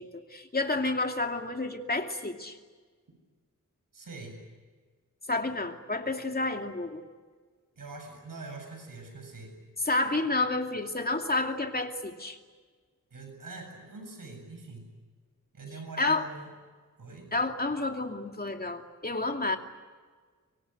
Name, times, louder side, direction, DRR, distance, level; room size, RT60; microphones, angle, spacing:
voice 1, 0.0-2.6 5.3-7.0 9.8-12.4 16.0-16.3 17.3-19.6, left 2 dB, 30° left, 4 dB, 2.6 m, -30 dB
voice 2, 3.9-4.4 7.8-9.5 13.1-14.9 15.5-16.5 17.0-17.3, right 3 dB, 85° right, 3 dB, 7.9 m, -43 dB
24.5 x 24.0 x 9.3 m, 1.5 s
wide cardioid pair, 105°, 32 cm